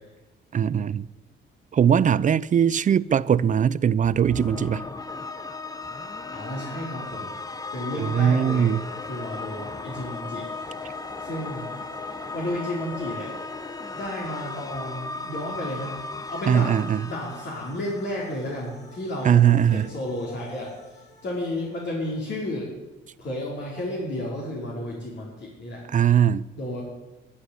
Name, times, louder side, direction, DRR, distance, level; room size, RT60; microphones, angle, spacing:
voice 1, 0.5-1.1 1.7-4.8 8.0-8.8 16.5-17.1 19.2-19.9 25.9-26.4, right 8 dB, 40° right, 0.5 m, -20 dB
sound 1, 4.0-18.4, left 3 dB, 20° left, 0.9 m, -36 dB
voice 2, 6.3-7.3 7.7-8.7 9.0-10.5 11.2-11.7 12.3-13.3 13.9-16.0 16.3-16.8 17.0-19.4 19.7-20.7 21.2-22.7 23.2-25.8 26.6-26.8, left 1 dB, 60° left, 4.4 m, -32 dB
sound 2, 7.0-22.4, left 3 dB, 35° left, 3.6 m, -50 dB
11.0 x 10.5 x 9.8 m
cardioid pair, 90°, 20 cm